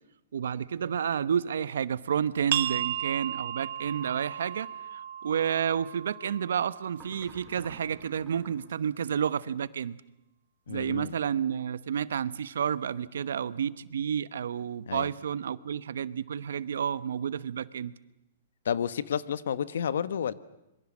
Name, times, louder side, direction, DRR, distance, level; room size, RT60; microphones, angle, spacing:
voice 1, 0.3-10.0 10.7-17.9, right 8 dB, 80° right, 17 dB, 1.0 m, -30 dB
sound 1, 2.5-7.9, right 11 dB, 60° right, 1.3 m, -35 dB
sound 2, 3.8-4.3 6.9-8.7, right 4 dB, 10° right, 3.7 m, -51 dB
voice 2, 10.7-11.1 14.9-15.1 18.6-20.3, left 8 dB, 75° left, 16 dB, 1.1 m, -30 dB
25.5 x 23.0 x 7.4 m, 0.92 s
hypercardioid pair, 155°, 0 cm